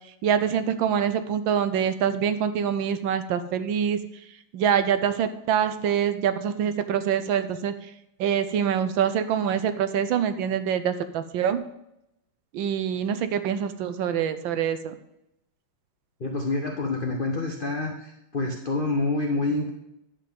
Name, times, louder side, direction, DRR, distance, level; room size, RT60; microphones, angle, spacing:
voice 1, 0.2-4.0 4.5-7.7 8.2-11.6 12.5-14.9, right 8 dB, 75° right, 11 dB, 1.3 m, -25 dB
voice 2, 16.2-19.7, left 2 dB, 60° left, 2 dB, 0.5 m, -27 dB
10.5 x 3.8 x 7.4 m, 0.84 s
omnidirectional pair, 2.3 m